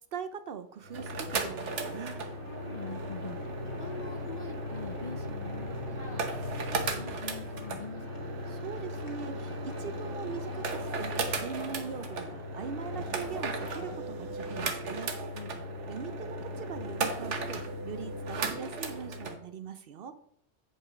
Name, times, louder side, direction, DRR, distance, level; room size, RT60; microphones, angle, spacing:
voice 1, 0.1-2.2 8.5-15.1 15.9-20.2, right 7 dB, 60° right, 11 dB, 0.7 m, -41 dB
sound 1, 0.8-19.4, right 2 dB, 75° right, 1.3 m, -36 dB
sound 2, 1.4-14.0, equal, 25° left, 2.0 m, -48 dB
sound 3, 1.8-16.6, left 1 dB, 30° right, 1.5 m, -49 dB
voice 2, 2.7-3.4 3.8-6.2 6.5-8.4 15.3-15.5, left 5 dB, 50° left, 7 dB, 0.6 m, -44 dB
8.5 x 5.4 x 4.8 m, 0.68 s
omnidirectional pair, 1.2 m